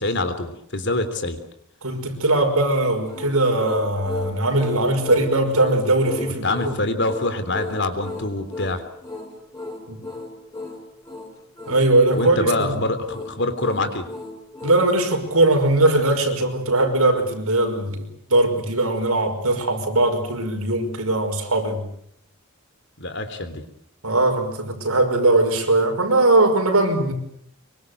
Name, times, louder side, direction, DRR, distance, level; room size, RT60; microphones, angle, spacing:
voice 1, 0.0-1.4 6.4-8.8 12.1-14.1 23.0-23.6, left 2 dB, 50° left, 3.4 m, -25 dB
voice 2, 1.8-6.7 9.9-10.0 11.7-12.8 14.6-21.8 24.0-27.1, right 2 dB, 80° right, 5.5 m, -20 dB
sound 1, 3.0-14.9, left 2 dB, 15° left, 6.7 m, -35 dB
25.5 x 24.0 x 8.1 m
head